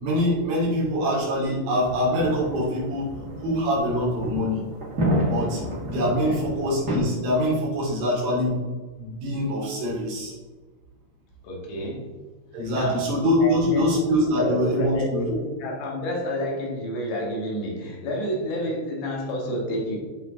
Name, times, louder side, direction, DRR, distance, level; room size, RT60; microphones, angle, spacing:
voice 1, 0.0-3.1 3.4-4.6 5.2-5.6 5.9-8.6 9.0-10.3 12.5-15.3, equal, 85° right, -6 dB, 5.3 m, -24 dB
sound 1, 1.7-7.0, equal, 30° right, 1.9 m, -30 dB
voice 2, 6.0-6.4 11.4-12.1 12.7-13.1 13.4-20.0, left 1 dB, 75° left, -3 dB, 4.1 m, -29 dB
14.0 x 5.1 x 3.9 m, 1.3 s
omnidirectional pair, 5.2 m